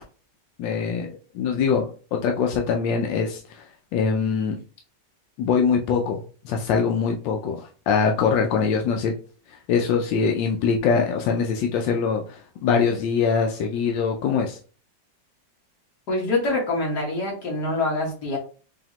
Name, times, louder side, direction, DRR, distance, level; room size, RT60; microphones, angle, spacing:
voice 1, 0.6-3.6 3.9-4.6 5.4-9.1 9.7-14.6, left 6 dB, 90° left, 2 dB, 1.3 m, -23 dB
voice 2, 16.1-18.4, left 2 dB, 65° left, -2 dB, 2.0 m, -25 dB
4.9 x 2.8 x 2.9 m, 0.39 s
omnidirectional pair, 1.9 m